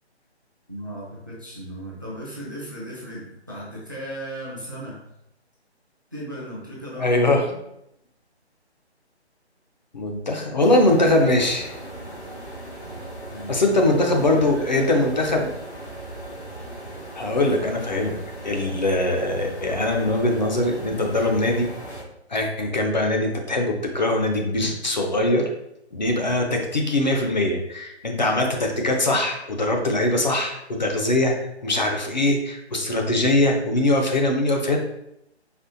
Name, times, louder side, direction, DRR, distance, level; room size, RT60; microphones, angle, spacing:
voice 1, 0.7-5.0 6.1-7.6 13.3-13.6 13.8-15.0, equal, 20° right, -6 dB, 0.4 m, -36 dB
voice 2, 7.0-7.4 9.9-11.7 13.5-15.5 17.2-18.2 18.4-21.7 22.3-25.5 25.9-34.8, left 1 dB, 40° left, 1 dB, 0.5 m, -22 dB
sound 1, 10.6-22.0, right 1 dB, 80° left, 1.4 m, -38 dB
4.2 x 2.9 x 2.7 m, 0.81 s
figure-of-eight pair, 150°, 34 cm